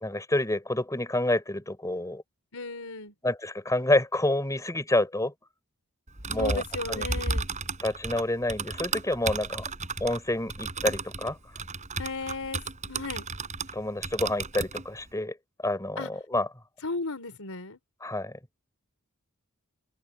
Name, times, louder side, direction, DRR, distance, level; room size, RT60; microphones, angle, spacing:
voice 1, 0.0-2.2 3.2-5.3 6.3-6.6 6.9-7.0 7.8-9.6 10.0-11.4 13.7-15.4 15.6-16.5 18.0-18.3, left 1 dB, 15° left, 4.5 m, -28 dB
voice 2, 2.5-3.1 6.4-7.5 12.0-13.3 16.0-16.1 16.8-17.8, left 3 dB, 75° left, 4.2 m, -35 dB
Typing, 6.1-13.8 14.0-14.8, right 4 dB, 35° right, 5.0 m, -33 dB
open air
head